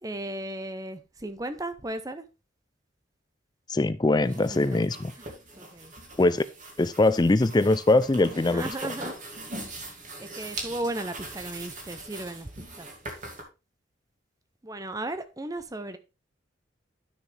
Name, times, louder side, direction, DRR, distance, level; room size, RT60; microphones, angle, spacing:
voice 1, 0.0-2.2 4.3-4.8 5.2-5.3 5.6-5.9 8.5-9.2 9.5-9.7 10.2-12.9 14.6-16.0, right 1 dB, 20° right, 0.7 m, -36 dB
voice 2, 3.7-5.1 6.2-6.4 6.8-8.9, left 2 dB, 20° left, 0.4 m, -22 dB
sound 1, 4.2-13.4, right 2 dB, 40° right, 2.5 m, -41 dB
12.0 x 6.1 x 3.4 m
head